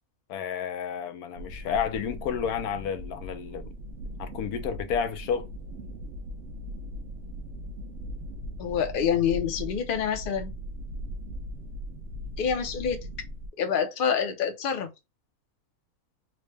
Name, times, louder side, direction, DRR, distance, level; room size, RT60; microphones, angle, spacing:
voice 1, 0.3-3.7 4.2-5.5, left 7 dB, 85° left, 1.1 m, -31 dB
sound 1, 1.4-13.5, equal, 65° right, 0.8 m, -39 dB
voice 2, 8.6-10.5 12.4-13.0 13.6-14.9, left 7 dB, 55° left, 0.6 m, -27 dB
3.8 x 2.1 x 3.2 m
omnidirectional pair, 1.6 m